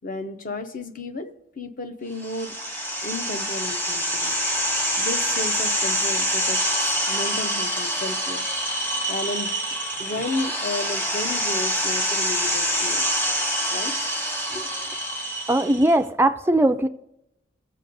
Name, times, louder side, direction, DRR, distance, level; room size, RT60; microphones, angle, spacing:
voice 1, 0.0-2.5 3.0-4.4 5.0-8.4 9.1-9.5 10.0-13.0 13.7-13.9 14.5-14.7, left 2 dB, 45° left, 0.7 m, -33 dB
sound 1, 2.2-16.0, equal, 10° left, 0.9 m, -26 dB
voice 2, 15.5-16.9, right 1 dB, 10° right, 0.3 m, -19 dB
18.0 x 7.5 x 2.6 m
head